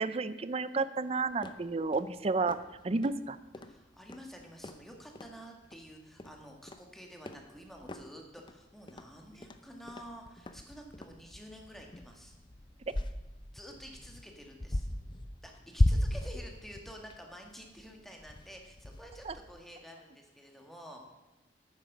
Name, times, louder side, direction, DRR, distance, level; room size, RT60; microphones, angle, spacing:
voice 1, 0.0-3.4 19.3-19.4, right 3 dB, 35° right, 14 dB, 0.5 m, -31 dB
sound 1, 1.3-19.6, left 1 dB, 25° left, 0.6 m, -38 dB
voice 2, 3.6-12.3 13.5-14.9 15.4-21.1, equal, ahead, 1 dB, 1.7 m, -50 dB
9.4 x 9.0 x 6.1 m, 1.1 s
head